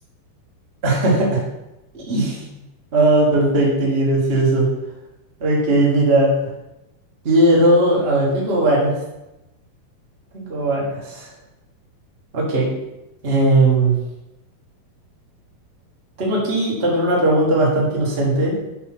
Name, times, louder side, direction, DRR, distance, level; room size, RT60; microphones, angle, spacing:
voice 1, 0.8-1.4 1.9-2.4 2.9-4.7 5.4-6.3 7.2-8.9 10.3-11.3 12.3-12.7 13.2-14.0 16.2-18.6, right 2 dB, 50° right, -4 dB, 0.7 m, -18 dB
5.8 x 4.4 x 6.0 m, 0.95 s
omnidirectional pair, 4.6 m